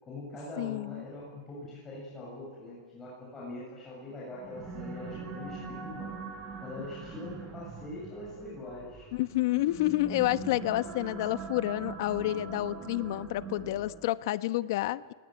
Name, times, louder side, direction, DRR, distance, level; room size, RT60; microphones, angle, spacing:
voice 1, 0.0-6.1 6.6-9.1, left 2 dB, 15° left, -5 dB, 7.6 m, -43 dB
voice 2, 0.6-1.1 9.1-15.1, left 16 dB, 55° left, 14 dB, 0.9 m, -29 dB
sound 1, 4.3-14.2, right 4 dB, 20° right, 5.9 m, -42 dB
29.5 x 20.0 x 9.3 m, 1.5 s
hypercardioid pair, 150°, 2 cm